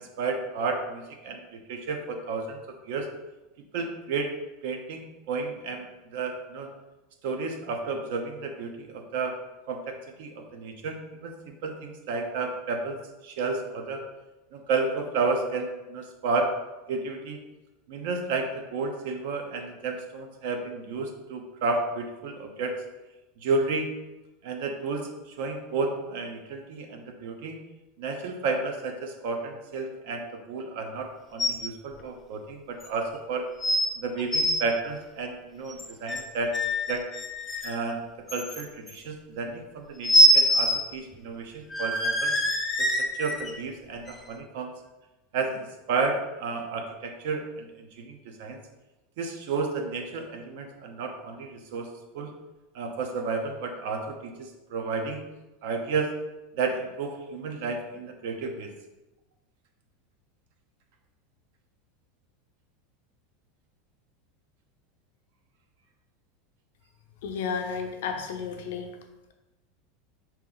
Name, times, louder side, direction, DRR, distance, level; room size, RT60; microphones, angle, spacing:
voice 1, 0.0-3.1 3.7-4.3 4.6-5.9 6.1-6.7 7.2-9.3 9.7-13.0 13.2-14.0 14.5-16.5 16.9-17.4 17.9-22.7 23.4-23.9 24.4-27.6 28.0-33.5 34.0-36.5 36.9-37.0 37.6-38.0 38.3-42.4 42.8-44.7 45.3-48.6 49.2-51.9 52.1-52.3 52.7-55.2 55.6-56.1 56.6-58.7, right 4 dB, 65° right, 4 dB, 0.6 m, -32 dB
sound 1, 31.4-31.7 32.0-32.1 32.8-32.9 33.6-33.9 34.2-34.6 35.7-36.2 36.5-37.8 38.3-38.9 40.0-40.8 41.1-41.2 41.7-43.5 44.1-44.2, equal, 15° left, 0.6 m, -23 dB
voice 2, 67.2-68.9, left 6 dB, 80° left, 4 dB, 0.6 m, -32 dB
3.7 x 2.9 x 3.9 m, 1.1 s
supercardioid pair, 145°, 0 cm